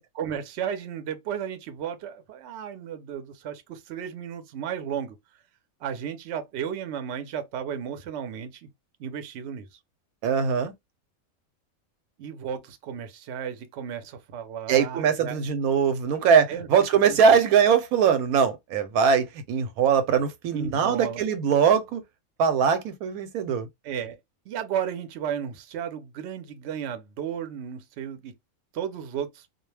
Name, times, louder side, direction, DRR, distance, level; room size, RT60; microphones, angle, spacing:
voice 1, 0.0-5.2 5.8-8.7 9.0-9.8 12.2-15.4 16.5-16.7 17.1-17.2 20.5-21.2 23.8-24.2 24.5-28.3 28.7-29.5, right 8 dB, 65° right, 0.8 m, -34 dB
voice 2, 10.2-10.7 14.7-22.0 22.4-23.7, right 7 dB, 85° right, 1.0 m, -21 dB
2.3 x 2.1 x 3.1 m
omnidirectional pair, 1.5 m